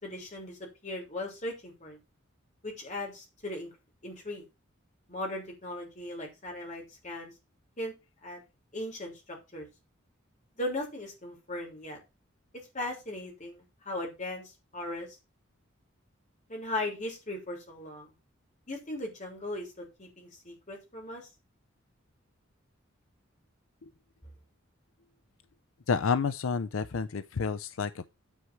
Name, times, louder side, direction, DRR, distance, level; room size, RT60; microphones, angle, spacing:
voice 1, 0.0-2.0 2.6-3.7 4.0-4.4 5.1-7.3 7.8-7.9 8.2-8.4 8.7-9.7 10.6-12.0 12.7-15.2 16.5-18.1 18.7-21.2, left 1 dB, 35° left, 3.3 m, -38 dB
voice 2, 25.9-28.1, left 5 dB, 80° left, 0.5 m, -30 dB
9.7 x 4.6 x 6.3 m
head